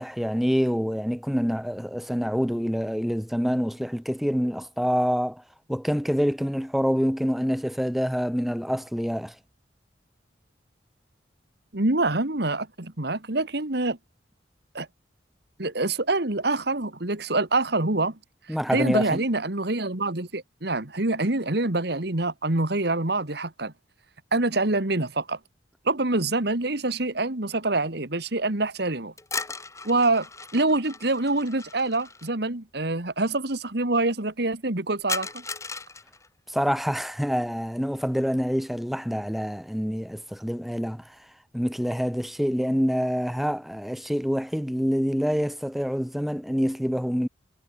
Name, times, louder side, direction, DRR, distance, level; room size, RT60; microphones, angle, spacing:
voice 1, 0.0-5.4 5.7-9.4 18.5-19.2 36.5-41.2 41.5-47.3, equal, ahead, 1.9 m, -26 dB
voice 2, 11.7-14.0 14.7-14.9 15.6-18.1 18.7-23.7 24.3-25.4 25.9-29.1 29.8-30.3 30.5-35.4, right 2 dB, 60° right, 2.1 m, -25 dB
sound 1, 29.2-32.3 35.1-36.3, left 4 dB, 15° left, 2.6 m, -36 dB
head